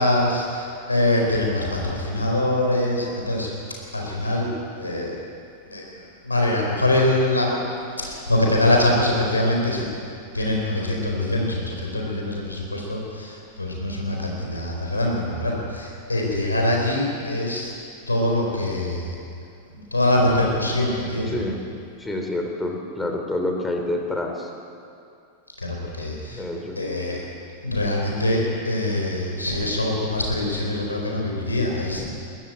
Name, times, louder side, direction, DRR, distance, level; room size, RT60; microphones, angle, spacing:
voice 1, 0.0-3.5 3.9-4.5 4.8-5.2 5.7-7.6 8.0-9.9 10.3-17.7 18.1-19.2 19.9-21.4 25.6-26.4 26.7-27.2 27.6-32.1, left 1 dB, 80° left, -1 dB, 4.4 m, -23 dB
voice 2, 21.3-21.6 22.0-24.5 26.3-26.8 32.0-32.1, left 1 dB, 10° left, 3 dB, 3.3 m, -28 dB
22.5 x 14.0 x 9.0 m, 2.5 s
figure-of-eight pair, 90°, 0 cm